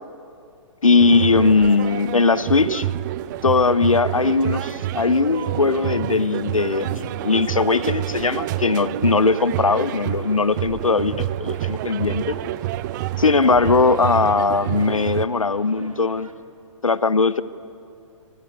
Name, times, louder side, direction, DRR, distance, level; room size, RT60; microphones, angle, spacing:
voice 1, 0.8-2.9 3.4-12.4 13.2-16.3 16.8-17.4, left 4 dB, 80° left, 17 dB, 1.0 m, -19 dB
sound 1, 1.0-15.2, right 14 dB, 35° right, 0.8 m, -28 dB
sound 2, 1.2-16.3, right 2 dB, 85° right, 2.2 m, -42 dB
27.0 x 21.5 x 9.5 m, 2.5 s
figure-of-eight pair, 120°, 17 cm